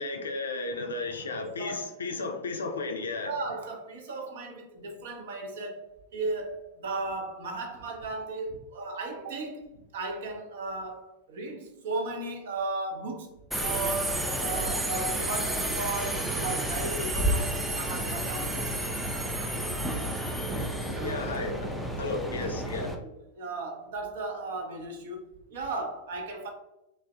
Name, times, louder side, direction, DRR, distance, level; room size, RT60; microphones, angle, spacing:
voice 1, 0.0-3.3 21.0-22.9, left 3 dB, 70° left, 0.4 m, -34 dB
voice 2, 1.4-2.0 3.2-18.7 21.0-21.4 23.0-26.5, right 3 dB, 60° right, 0.5 m, -36 dB
Subway metro underground, 13.5-23.0, right 1 dB, ahead, 0.4 m, -31 dB
3.2 x 2.1 x 2.4 m
figure-of-eight pair, 90°, 0 cm